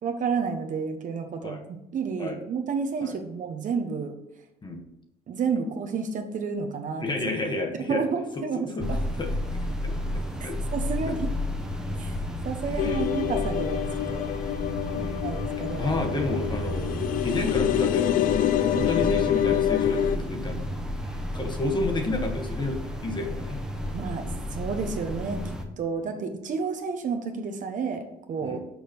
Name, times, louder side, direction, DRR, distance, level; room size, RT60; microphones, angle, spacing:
voice 1, 0.0-4.1 5.3-7.1 7.7-9.0 10.7-11.3 12.0-12.2 12.4-14.2 15.2-16.0 23.9-28.6, right 5 dB, 50° right, 6 dB, 1.0 m, -31 dB
voice 2, 7.0-8.0 8.6-9.3 9.8-9.9 10.4-10.6 11.1-11.2 12.8-13.1 14.9-15.2 15.7-16.9 17.2-20.6 21.3-23.6 26.0-26.1 28.4-28.6, left 2 dB, 25° left, 4 dB, 1.3 m, -30 dB
sound 1, 8.8-25.6, left 1 dB, 5° right, 1.1 m, -32 dB
sound 2, 12.8-20.2, left 11 dB, 55° left, 0.4 m, -26 dB
6.3 x 5.0 x 5.3 m, 0.86 s
cardioid pair, 110°, 17 cm